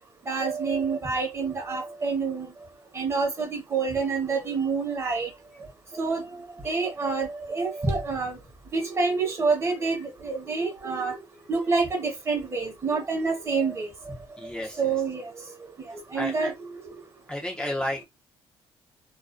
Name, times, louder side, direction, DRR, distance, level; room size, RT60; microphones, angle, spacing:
voice 1, 0.3-2.5 2.9-5.3 6.0-6.2 6.6-8.4 8.7-11.2 11.5-13.9 14.8-15.2 16.1-16.5, right 4 dB, 25° right, 0.8 m, -27 dB
voice 2, 14.4-14.9 16.1-16.5 17.3-18.0, left 1 dB, 10° left, 0.4 m, -32 dB
2.4 x 2.2 x 2.3 m
cardioid pair, 135°, 10 cm